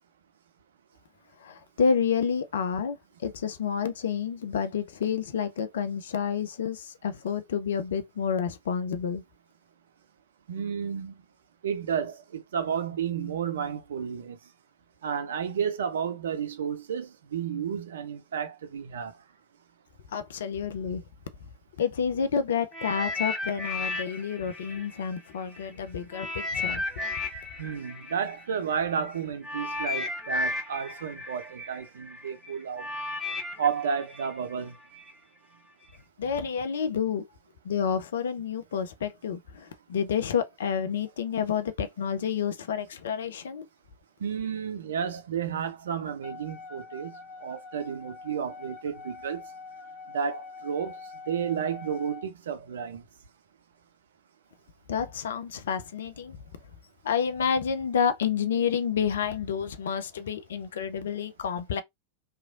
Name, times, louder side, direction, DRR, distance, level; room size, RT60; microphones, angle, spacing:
voice 1, 1.4-9.2 20.1-21.0 21.8-26.8 36.2-37.2 37.6-43.7 54.9-56.4 57.0-61.8, left 7 dB, 60° left, 0.5 m, -29 dB
voice 2, 10.5-11.2 11.6-14.4 15.0-19.1 27.6-32.9 33.6-34.8 44.2-47.1 47.4-49.4 50.1-51.0 51.3-53.0, right 7 dB, 65° right, 0.5 m, -32 dB
sound 1, 22.7-25.6 26.1-35.1 35.8-36.0, left 3 dB, 10° right, 1.1 m, -34 dB
Wind instrument woodwind instrument, 46.2-52.3, left 4 dB, 35° left, 0.9 m, -44 dB
2.9 x 2.4 x 2.4 m
figure-of-eight pair, 90°, 0 cm